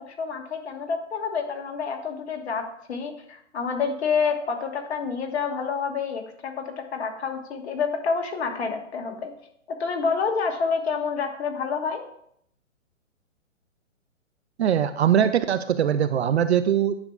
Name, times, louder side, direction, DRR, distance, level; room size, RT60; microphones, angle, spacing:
voice 1, 0.0-2.6 2.9-9.3 9.8-12.0, left 5 dB, 55° left, 4 dB, 1.4 m, -28 dB
voice 2, 14.6-17.0, right 9 dB, 60° right, 12 dB, 0.5 m, -21 dB
9.7 x 6.8 x 2.3 m, 0.69 s
figure-of-eight pair, 130°, 38 cm